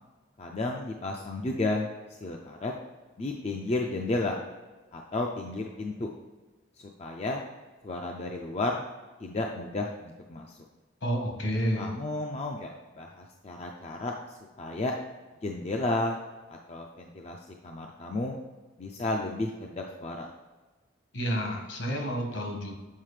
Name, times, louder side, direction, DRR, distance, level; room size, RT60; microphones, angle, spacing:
voice 1, 0.4-1.9 2.2-2.7 3.2-4.4 4.9-6.1 6.8-7.4 7.8-8.8 9.2-10.6 11.8-14.9 15.4-16.2 16.5-18.4 18.8-20.3, left 2 dB, 30° left, 1 dB, 0.4 m, -32 dB
voice 2, 11.0-11.9 21.1-22.7, equal, 70° left, 1 dB, 1.3 m, -30 dB
7.4 x 4.7 x 3.2 m, 1.3 s
head